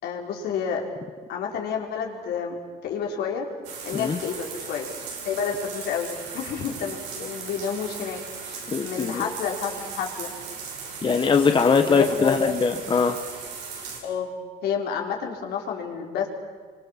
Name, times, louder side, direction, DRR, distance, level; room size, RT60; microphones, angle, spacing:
voice 1, 0.0-0.9 1.3-2.6 2.8-3.5 3.8-4.9 5.2-6.1 6.3-10.3 11.8-12.6 14.0-14.3 14.6-16.3, left 7 dB, 75° left, 0 dB, 4.9 m, -30 dB
sound 1, 3.6-14.0, right 5 dB, 90° right, 7.1 m, -37 dB
voice 2, 8.7-9.2 11.0-13.1, left 5 dB, 30° left, 6 dB, 1.4 m, -21 dB
27.0 x 25.0 x 7.6 m, 1.5 s
cardioid pair, 110°, 17 cm